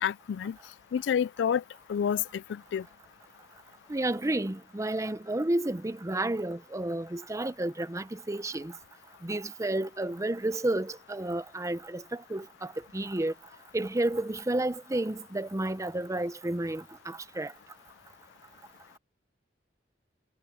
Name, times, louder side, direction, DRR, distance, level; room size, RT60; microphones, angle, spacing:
voice 1, 0.0-0.6 0.9-1.6 1.9-2.9, left 8 dB, 75° left, 0.3 m, -29 dB
voice 2, 3.9-8.7 9.2-13.3 13.7-17.5, right 1 dB, 15° right, 0.7 m, -31 dB
head